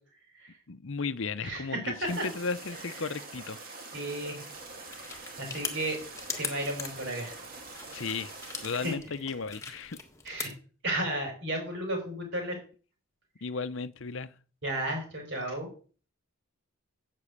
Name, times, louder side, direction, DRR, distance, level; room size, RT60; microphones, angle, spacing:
voice 1, 0.7-3.6 7.9-8.3 8.6-10.0 13.4-14.3, left 4 dB, 60° left, 0.7 m, -35 dB
voice 2, 1.4-2.2 3.9-4.5 4.9-6.0 6.4-7.4 8.7-8.9 10.2-10.5 10.8-12.6 14.6-15.7, right 1 dB, 55° right, 5.2 m, -33 dB
sound 1, 2.1-9.0, right 3 dB, 40° right, 2.4 m, -45 dB
sound 2, 4.5-10.5, left 5 dB, 15° left, 1.4 m, -41 dB
8.3 x 7.7 x 8.5 m
head